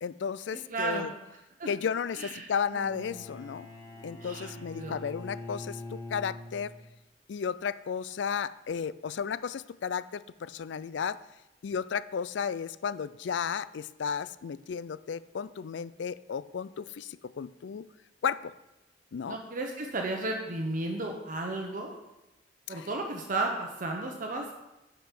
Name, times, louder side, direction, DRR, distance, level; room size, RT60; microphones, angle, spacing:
voice 1, 0.0-1.1 1.7-3.7 4.0-6.7 7.3-11.2 11.6-17.9 18.2-18.5 19.1-19.4 22.7-22.9, left 6 dB, 75° left, 17 dB, 0.4 m, -34 dB
voice 2, 0.5-1.1 1.6-1.7 2.2-3.2 4.2-5.0 19.3-21.9 22.7-24.5, right 2 dB, 50° right, 1 dB, 1.0 m, -34 dB
Bowed string instrument, 2.8-6.9, left 2 dB, 20° left, 1.5 m, -43 dB
10.0 x 5.2 x 6.1 m, 0.97 s
head